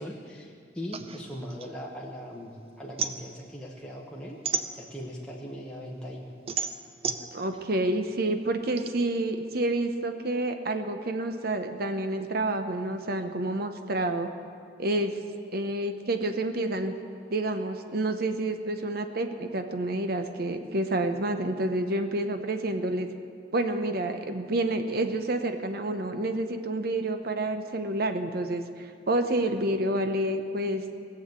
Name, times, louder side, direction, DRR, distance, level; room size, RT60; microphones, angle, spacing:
voice 1, 0.0-4.4 4.7-6.2, equal, 5° left, -4 dB, 1.2 m, -39 dB
sound 1, 0.9-2.4 2.7-5.3 5.7-8.9, right 6 dB, 35° right, 0.6 m, -34 dB
voice 2, 7.3-14.3 14.8-15.2 15.5-16.9 17.3-23.1 23.5-30.8, right 1 dB, 60° right, 7 dB, 0.9 m, -29 dB
18.5 x 7.2 x 7.9 m, 2.4 s
head